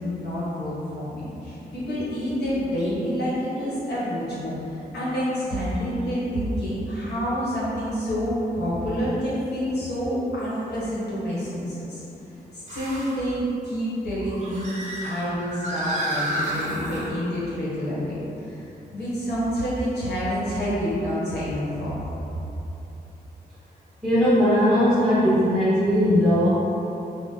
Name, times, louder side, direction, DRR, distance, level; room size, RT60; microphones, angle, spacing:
voice 1, 0.0-12.0 12.5-14.7 15.0-18.6 18.9-21.9, equal, 85° left, -9 dB, 1.4 m, -28 dB
sound 1, 2.8-2.9 3.6-3.7 5.7-5.8 9.4-9.5 12.7-13.2 14.2-17.1, right 1 dB, 45° right, 0.7 m, -31 dB
voice 2, 24.0-26.5, equal, ahead, -13 dB, 1.1 m, -19 dB
4.1 x 2.4 x 3.9 m, 2.9 s
wide cardioid pair, 135°, 17 cm